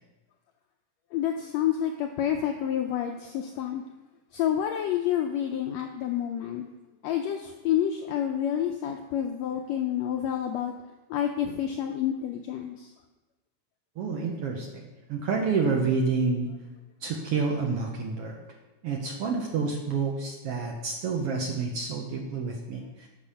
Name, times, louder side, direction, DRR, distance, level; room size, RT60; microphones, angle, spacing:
voice 1, 1.1-3.8 4.3-6.7 7.0-10.7 11.1-12.9, left 10 dB, 85° left, 4 dB, 1.5 m, -29 dB
voice 2, 14.0-16.5 17.0-18.4 18.8-23.1, right 4 dB, 65° right, 0 dB, 1.5 m, -29 dB
8.5 x 6.7 x 5.6 m, 1.1 s
omnidirectional pair, 3.7 m